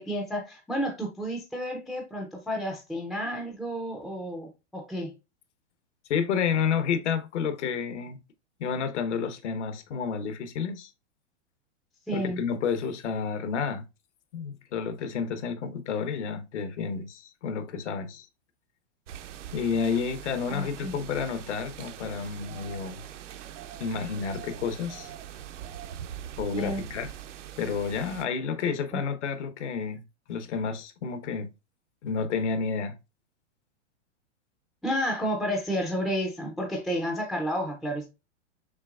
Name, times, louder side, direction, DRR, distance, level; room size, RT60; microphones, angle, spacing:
voice 1, 0.0-5.1 12.1-12.4 20.5-21.0 26.5-26.8 28.9-29.0 34.8-38.1, equal, ahead, 0.3 m, -31 dB
voice 2, 6.1-8.2 8.6-10.9 12.1-13.8 14.3-18.3 19.5-23.0 23.8-25.1 26.4-27.1 27.6-30.0 30.3-31.5 32.0-33.0, left 6 dB, 75° left, 1.1 m, -30 dB
sound 1, 19.1-28.3, right 10 dB, 85° right, 0.7 m, -42 dB
5.9 x 3.4 x 2.3 m
hypercardioid pair, 140°, 35 cm